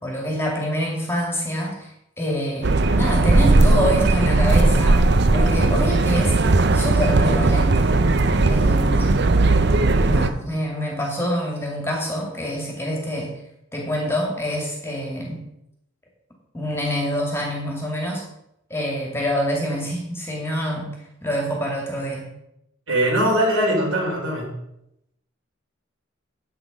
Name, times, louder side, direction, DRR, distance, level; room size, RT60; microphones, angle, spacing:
voice 1, 0.0-5.0 5.3-6.4 6.7-7.9 8.4-9.2 10.1-13.4 13.7-15.4 16.5-18.2 18.7-20.9 21.2-22.3, equal, 10° left, -1 dB, 2.5 m, -26 dB
sound 1, 2.6-10.3, right 2 dB, 50° right, 0.7 m, -17 dB
voice 2, 22.9-24.6, right 1 dB, 70° right, -2 dB, 4.4 m, -21 dB
10.0 x 8.4 x 5.3 m, 0.81 s
head